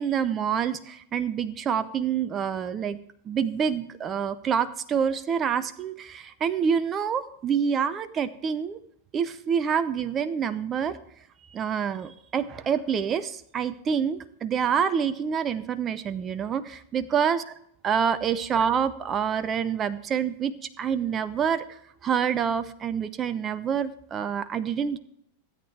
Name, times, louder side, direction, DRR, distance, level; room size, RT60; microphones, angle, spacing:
voice 1, 0.0-3.0 3.2-8.8 9.1-11.0 11.5-17.4 17.8-25.0, right 7 dB, 25° right, 13 dB, 0.7 m, -27 dB
16.5 x 9.1 x 3.4 m, 0.70 s
figure-of-eight pair, 90°, 0 cm